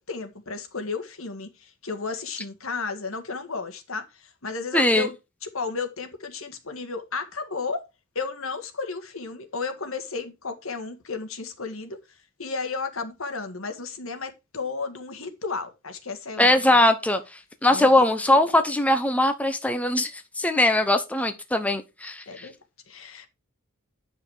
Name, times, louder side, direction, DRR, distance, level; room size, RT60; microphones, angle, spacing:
voice 1, 0.0-5.2 5.4-7.8 8.2-12.0 12.4-16.8 17.7-18.4 22.3-22.5 22.9-23.3, left 4 dB, 75° left, 1.9 m, -33 dB
voice 2, 4.7-5.1 16.4-17.2 17.6-22.5, left 1 dB, 5° left, 0.9 m, -21 dB
9.7 x 5.9 x 4.9 m
head